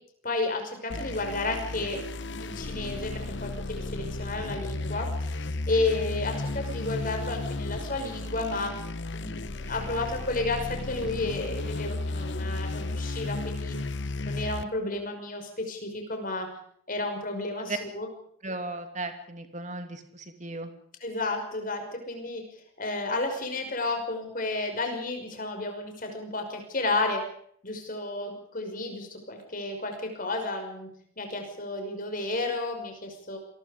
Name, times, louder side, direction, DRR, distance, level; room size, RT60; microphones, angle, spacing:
voice 1, 0.2-8.8 9.1-13.8 14.3-16.5 16.9-18.1 21.0-22.4 22.8-27.2 27.6-30.9 31.2-33.4, left 2 dB, 40° left, 4 dB, 5.7 m, -32 dB
sound 1, 0.9-14.6, left 2 dB, 55° left, 1.0 m, -34 dB
voice 2, 18.4-20.7, right 3 dB, 35° right, 6 dB, 2.8 m, -36 dB
26.5 x 21.0 x 5.2 m, 0.65 s
head